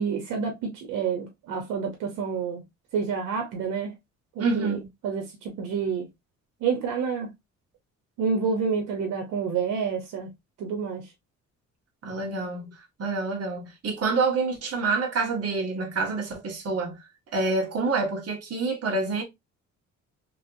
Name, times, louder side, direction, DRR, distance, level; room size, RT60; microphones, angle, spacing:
voice 1, 0.0-2.6 2.9-3.9 4.4-6.1 6.6-7.3 8.2-10.3 10.6-11.0, right 6 dB, 90° right, 0.9 m, -28 dB
voice 2, 4.4-4.8 12.0-17.0 17.3-19.2, right 3 dB, 50° right, 1.5 m, -27 dB
3.2 x 2.9 x 2.6 m
cardioid pair, 90°, 30 cm